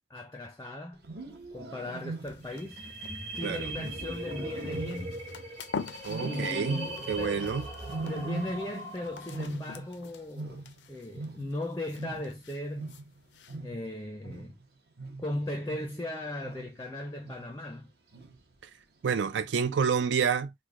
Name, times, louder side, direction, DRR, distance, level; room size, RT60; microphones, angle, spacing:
voice 1, 0.1-1.0 1.5-2.8 3.4-5.2 6.2-7.6 8.0-13.0 13.6-14.6 15.2-17.9, left 1 dB, 15° left, 0.4 m, -37 dB
Wild animals, 0.9-2.7 3.7-5.6 6.1-7.3 7.9-8.9 9.2-11.7 11.9-16.9 17.2-17.7 18.1-18.5 19.3-19.7, right 3 dB, 65° right, 0.7 m, -41 dB
sound 1, 2.0-13.6, left 5 dB, 80° left, 0.4 m, -46 dB
sound 2, 2.5-9.5, right 1 dB, 35° right, 1.0 m, -40 dB
voice 2, 3.4-3.7 6.0-7.7 19.0-20.5, right 6 dB, 90° right, 0.4 m, -29 dB
3.1 x 2.1 x 3.6 m
head